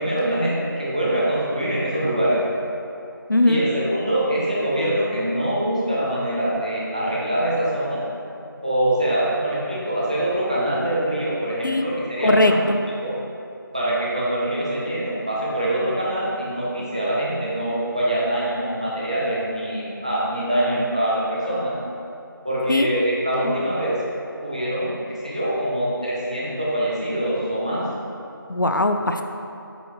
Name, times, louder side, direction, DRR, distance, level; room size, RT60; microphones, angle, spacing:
voice 1, 0.0-2.4 3.4-8.0 8.6-12.6 13.0-13.1 13.7-21.8 22.4-24.0 24.4-27.9, right 1 dB, 20° right, -7 dB, 0.7 m, -24 dB
voice 2, 3.3-3.6 11.6-11.9 12.2-12.8 22.7-22.9 23.4-23.7 28.5-29.2, left 1 dB, 60° left, 6 dB, 0.4 m, -20 dB
8.7 x 4.4 x 3.2 m, 2.7 s
figure-of-eight pair, 180°, 12 cm